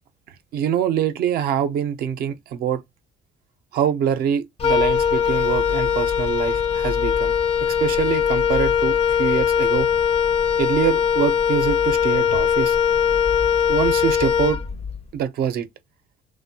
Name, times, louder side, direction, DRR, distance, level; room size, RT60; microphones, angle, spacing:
voice 1, 0.5-2.8 3.7-7.3 7.6-9.9 10.6-12.8 13.7-14.6 15.1-15.7, right 9 dB, 65° right, 0.4 m, -24 dB
Wind instrument woodwind instrument, 4.6-15.0, left 7 dB, 35° left, 0.4 m, -20 dB
2.8 x 2.0 x 2.6 m
cardioid pair, 110°, 17 cm